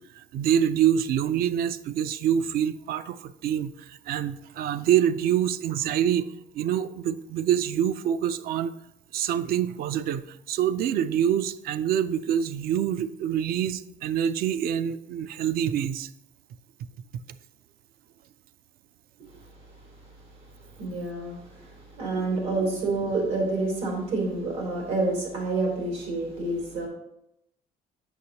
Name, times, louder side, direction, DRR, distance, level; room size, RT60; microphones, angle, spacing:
voice 1, 0.1-8.7 9.1-16.1 22.0-22.3, right 9 dB, 60° right, 14 dB, 0.4 m, -26 dB
voice 2, 20.8-26.9, right 2 dB, 90° right, -1 dB, 3.0 m, -28 dB
8.1 x 6.2 x 2.9 m, 0.81 s
cardioid pair, 110°, 17 cm